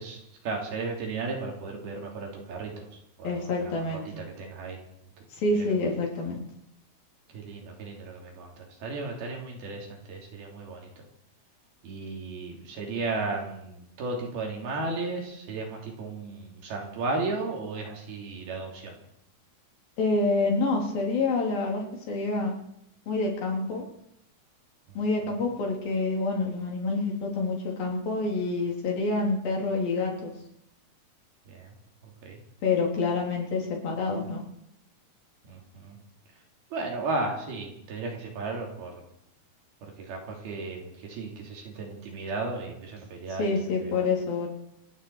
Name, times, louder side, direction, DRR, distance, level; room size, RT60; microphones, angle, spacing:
voice 1, 0.0-4.8 5.2-5.3 5.5-5.8 7.3-11.0 11.8-19.0 24.9-25.0 31.5-31.8 32.0-32.4 35.5-36.0 36.7-39.0 39.8-44.1, right 3 dB, 80° right, 0 dB, 4.9 m, -35 dB
voice 2, 3.2-4.0 5.3-6.4 20.0-22.5 23.1-23.8 24.9-30.3 32.6-34.4 43.4-44.5, left 3 dB, 70° left, 0 dB, 5.1 m, -27 dB
27.0 x 9.8 x 4.8 m, 0.79 s
omnidirectional pair, 4.3 m